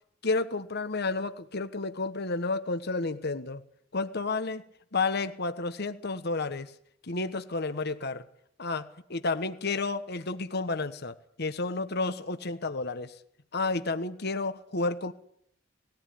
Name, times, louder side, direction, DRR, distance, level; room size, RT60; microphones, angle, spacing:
voice 1, 0.2-3.6 3.9-4.6 4.9-6.7 7.1-8.2 8.6-13.1 13.5-15.1, left 3 dB, 55° left, 1.3 m, -31 dB
19.5 x 15.0 x 9.4 m
head